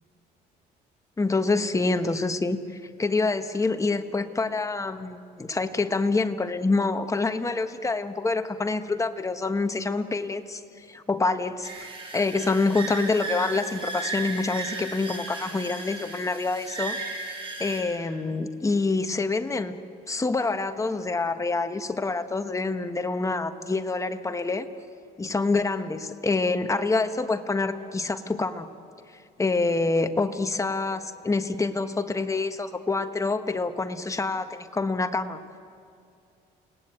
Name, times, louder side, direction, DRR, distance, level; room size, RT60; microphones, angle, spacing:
voice 1, 1.2-11.7 12.1-17.0 17.6-19.8 20.1-24.7 25.2-28.7 29.4-35.4, left 3 dB, 20° left, 8 dB, 1.3 m, -26 dB
sound 1, 11.6-17.8, right 3 dB, 30° right, 7.5 m, -35 dB
29.5 x 18.5 x 8.9 m, 2.5 s
cardioid pair, 110°, 17 cm